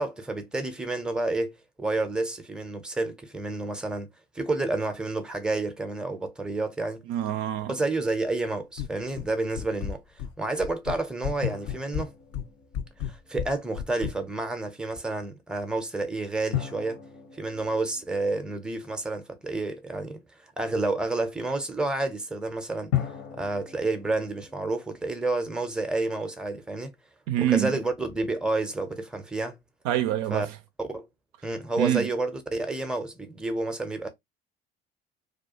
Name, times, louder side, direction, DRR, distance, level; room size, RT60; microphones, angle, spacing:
voice 1, 0.0-4.1 4.3-7.0 7.7-10.0 10.4-12.1 13.0-17.0 17.3-20.2 20.6-22.9 23.3-26.9 27.4-29.6 30.3-30.5 30.8-31.1 31.4-34.1, right 2 dB, 5° right, 0.6 m, -30 dB
voice 2, 7.1-7.7 27.3-27.7 29.8-30.6 31.8-32.1, right 11 dB, 65° right, 0.4 m, -25 dB
sound 1, 8.8-9.3 9.5-10.3 10.6-11.4 11.6-14.1, left 8 dB, 55° left, 0.4 m, -33 dB
sound 2, 11.4-13.7 16.5-19.5 22.9-24.8, left 11 dB, 70° left, 1.0 m, -36 dB
2.4 x 2.2 x 2.7 m
hypercardioid pair, 60°, 29 cm